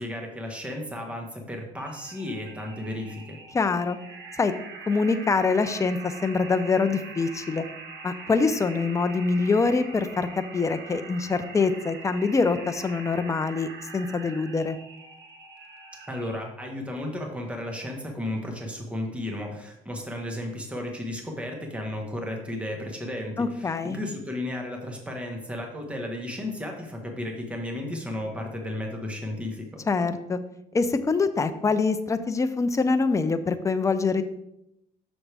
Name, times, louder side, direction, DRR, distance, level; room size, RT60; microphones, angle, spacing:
voice 1, 0.0-3.4 16.1-29.8, left 1 dB, 5° right, 1 dB, 1.2 m, -34 dB
sound 1, 1.8-16.3, right 4 dB, 80° right, 1.2 m, -43 dB
voice 2, 3.5-4.0 4.4-4.5 4.9-7.6 8.0-14.8 23.4-24.0 29.9-30.4 30.7-34.2, left 4 dB, 20° left, 9 dB, 0.5 m, -24 dB
6.2 x 6.1 x 3.4 m, 0.83 s
cardioid pair, 110°, 17 cm